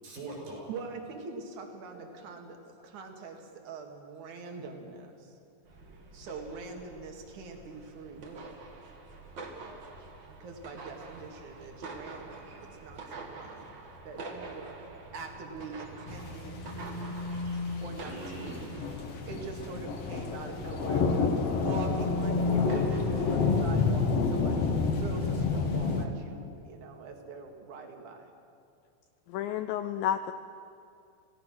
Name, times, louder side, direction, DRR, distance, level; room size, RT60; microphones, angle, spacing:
voice 1, 0.0-0.8 1.9-2.1 2.8-2.9 17.1-17.6 18.0-19.0, right 1 dB, 75° right, -2 dB, 7.2 m, -43 dB
voice 2, 0.7-2.6 2.8-5.3 6.1-8.6 10.4-13.7 14.0-14.7 15.1-17.3 17.8-18.6 19.3-21.3 21.6-24.7 25.0-28.3, right 4 dB, 55° right, 3 dB, 3.2 m, -43 dB
sound 1, 5.6-23.7, right 3 dB, 40° right, 1.8 m, -47 dB
sound 2, 15.7-18.0 21.0-22.6, left 2 dB, 90° right, 3.8 m, -35 dB
sound 3, 16.1-26.0, left 4 dB, 55° left, 1.9 m, -29 dB
voice 3, 29.3-30.3, left 10 dB, 80° left, 10 dB, 2.0 m, -31 dB
27.0 x 17.0 x 6.2 m, 2.5 s
omnidirectional pair, 4.5 m